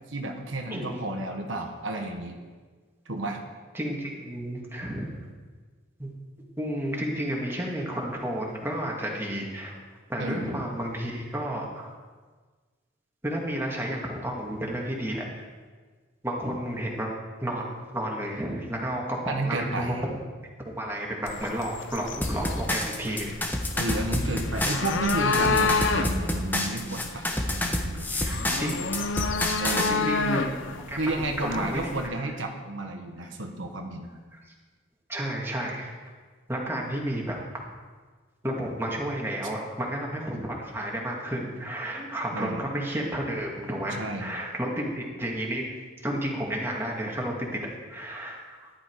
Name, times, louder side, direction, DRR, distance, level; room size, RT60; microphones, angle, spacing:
voice 1, 0.1-2.4 3.1-3.4 10.2-10.6 19.3-20.0 23.7-27.3 27.5-28.3 29.6-30.0 31.0-34.1 42.3-42.6 44.0-44.3, right 2 dB, 75° right, 2 dB, 1.4 m, -32 dB
voice 2, 3.7-5.1 6.0-6.1 6.6-9.8 10.1-11.9 13.2-15.3 16.2-17.1 17.4-20.2 20.8-23.4 25.4-25.7 28.1-28.9 29.9-30.5 30.9-31.9 34.3-34.5 35.1-35.9 36.5-37.4 38.4-45.6 46.0-48.7, right 1 dB, 10° right, -2 dB, 2.1 m, -32 dB
sound 1, 21.3-32.1, left 4 dB, 70° left, 0.9 m, -30 dB
sound 2, 22.2-29.9, left 1 dB, 10° left, 1.0 m, -28 dB
14.5 x 11.5 x 4.8 m, 1.4 s
head